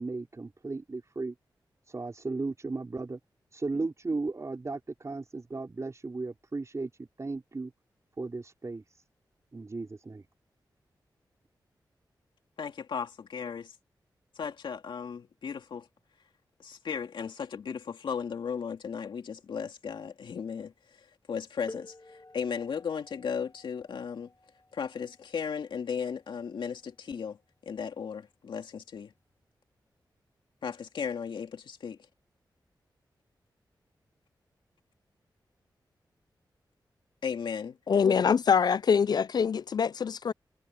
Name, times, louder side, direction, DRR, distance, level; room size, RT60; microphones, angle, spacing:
voice 1, 0.0-1.3 1.9-3.2 3.5-7.7 8.2-9.0 9.5-10.3, right 3 dB, 40° right, 5.0 m, -35 dB
voice 2, 12.6-13.7 14.4-15.8 16.6-20.7 21.3-21.9 22.3-24.3 24.7-27.4 27.7-29.1 30.6-32.0 37.2-37.8 38.0-38.1, left 6 dB, 85° left, 2.6 m, -35 dB
sound 1, 21.7-27.1 28.2-28.3 29.1-29.3, left 2 dB, 30° left, 2.9 m, -52 dB
voice 3, 37.9-40.3, left 6 dB, 60° left, 0.4 m, -24 dB
cardioid pair, 65°, 8 cm